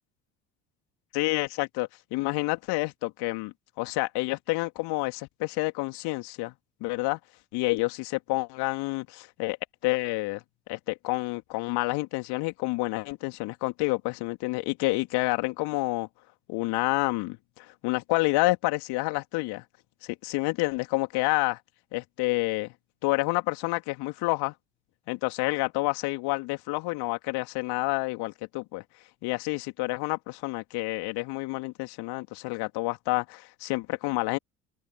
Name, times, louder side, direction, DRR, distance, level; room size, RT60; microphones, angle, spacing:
voice 1, 1.1-6.5 6.8-7.2 7.5-9.6 9.8-10.4 10.7-16.1 16.5-19.6 20.0-21.6 21.9-22.7 23.0-24.5 25.1-28.8 29.2-34.4, left 24 dB, 60° left, 3.2 m, -29 dB
figure-of-eight pair, 55°, 44 cm